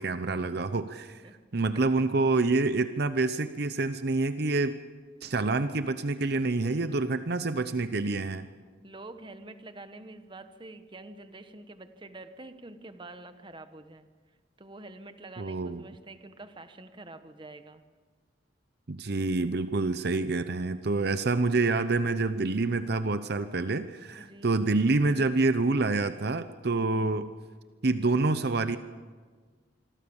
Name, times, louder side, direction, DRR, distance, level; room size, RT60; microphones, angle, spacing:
voice 1, 0.0-1.2 1.5-4.8 5.2-8.5 15.4-15.8 18.9-27.3 27.8-28.8, right 3 dB, 60° right, 11 dB, 0.8 m, -27 dB
voice 2, 6.6-7.2 8.8-14.1 14.6-17.8 24.2-24.5 26.8-27.2, right 2 dB, 25° right, 9 dB, 1.3 m, -47 dB
26.0 x 23.5 x 7.2 m, 1.5 s
head